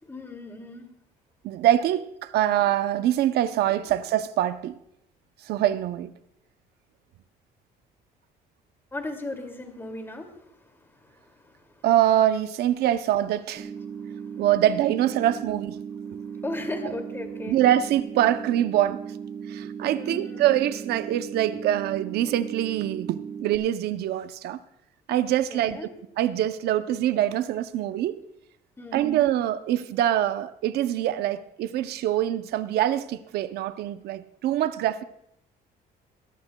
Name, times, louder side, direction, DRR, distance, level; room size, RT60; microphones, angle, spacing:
voice 1, 0.0-0.9 8.9-11.8 14.0-14.4 16.2-17.6 19.8-20.5 25.5-25.9 28.8-29.2, left 2 dB, 15° left, 2.3 m, -37 dB
voice 2, 1.4-4.7 5.4-6.1 11.8-13.7 14.4-15.8 17.5-19.0 19.5-24.6 25.1-25.8 26.2-28.2 28.9-35.0, right 12 dB, 70° right, 0.6 m, -24 dB
sound 1, 13.6-23.6, right 7 dB, 40° right, 1.1 m, -37 dB
21.0 x 14.0 x 2.2 m
cardioid pair, 110°, 17 cm